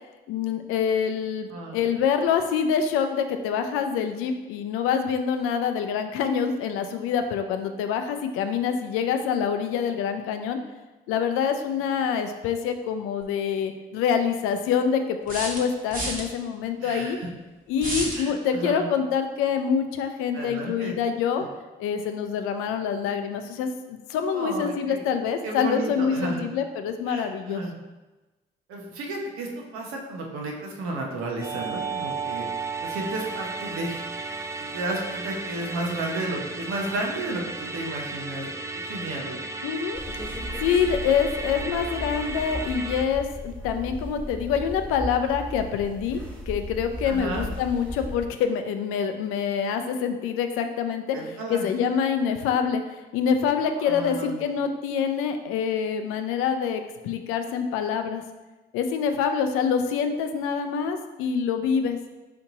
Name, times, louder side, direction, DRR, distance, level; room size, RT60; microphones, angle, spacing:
voice 1, 0.3-10.6 11.1-17.2 17.7-21.4 21.8-27.6 39.6-46.2 46.5-51.2 51.5-58.2 58.7-62.0, left 7 dB, 85° left, 7 dB, 0.4 m, -26 dB
voice 2, 1.5-2.0 16.8-17.3 18.1-18.9 20.3-20.9 24.3-25.0 25.4-26.4 27.1-27.8 28.7-32.5 32.8-34.0 34.7-39.4 47.0-47.5 51.1-51.7 53.8-54.5, right 2 dB, 80° right, 0 dB, 0.8 m, -33 dB
sound 1, 13.2-13.3 15.3-16.2 17.8-18.2, right 1 dB, 40° right, 1.2 m, -30 dB
Musical instrument, 31.4-43.1, right 3 dB, 15° right, 0.4 m, -34 dB
sound 2, 39.9-48.3, left 1 dB, 5° left, 1.3 m, -36 dB
4.2 x 2.9 x 3.8 m, 1.1 s
supercardioid pair, 50°, 21 cm